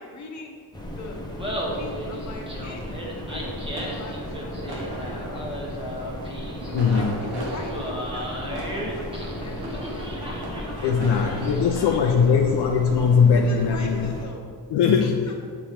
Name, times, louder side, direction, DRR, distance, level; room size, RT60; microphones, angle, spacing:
voice 1, 0.0-2.8 3.2-6.1 6.6-10.5 10.8-12.6 13.3-14.5 15.3-15.4, left 2 dB, 40° left, 0 dB, 1.0 m, -41 dB
sound 1, 0.7-14.3, left 1 dB, 10° left, 0.6 m, -36 dB
Laughter, 1.2-12.3, equal, 15° right, 1.0 m, -35 dB
sound 2, 3.1-12.1, right 1 dB, 60° right, 1.3 m, -37 dB
voice 2, 6.7-7.2 10.8-14.1 14.7-15.3, left 6 dB, 75° left, 2 dB, 0.6 m, -20 dB
8.5 x 3.0 x 5.0 m, 2.1 s
wide cardioid pair, 165°, 41 cm